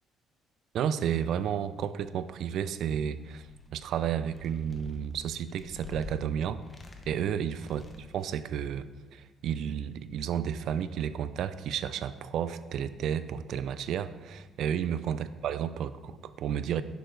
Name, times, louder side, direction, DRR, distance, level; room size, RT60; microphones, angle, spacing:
voice 1, 0.7-3.5 3.7-6.6 7.1-7.8 8.1-16.8, right 9 dB, 65° right, 13 dB, 0.4 m, -32 dB
sound 1, 3.2-3.9 4.3-6.2 6.6-7.3 7.6-8.3, left 4 dB, 20° left, 0.9 m, -47 dB
10.0 x 6.7 x 3.3 m, 1.3 s
cardioid pair, 135°, 0 cm